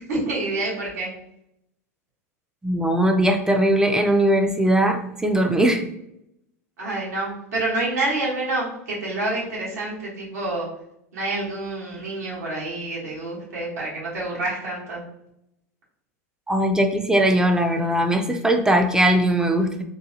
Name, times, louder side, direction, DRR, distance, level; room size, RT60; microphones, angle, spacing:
voice 1, 0.1-1.1 6.8-10.7 11.1-15.0, right 2 dB, 85° right, -5 dB, 1.3 m, -28 dB
voice 2, 2.6-5.8 16.5-19.8, right 1 dB, 10° right, 5 dB, 0.4 m, -20 dB
3.8 x 2.2 x 2.8 m, 0.79 s
hypercardioid pair, 105°, 8 cm